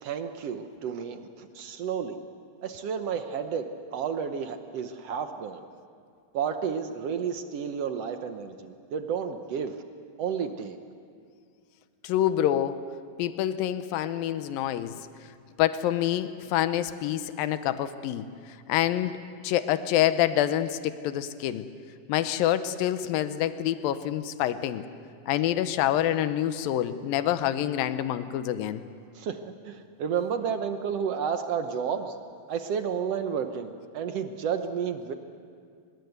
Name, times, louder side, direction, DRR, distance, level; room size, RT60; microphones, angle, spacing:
voice 1, 0.0-2.2 2.6-5.6 6.3-9.8 10.2-10.8 29.1-29.4 29.6-32.2 32.5-35.1, right 7 dB, 70° right, 7 dB, 1.5 m, -31 dB
voice 2, 12.0-12.8 13.2-15.0 15.6-19.2 19.4-21.7 22.1-24.8 25.3-28.8, left 12 dB, 90° left, 11 dB, 2.6 m, -27 dB
25.0 x 21.5 x 8.0 m, 2.3 s
omnidirectional pair, 4.0 m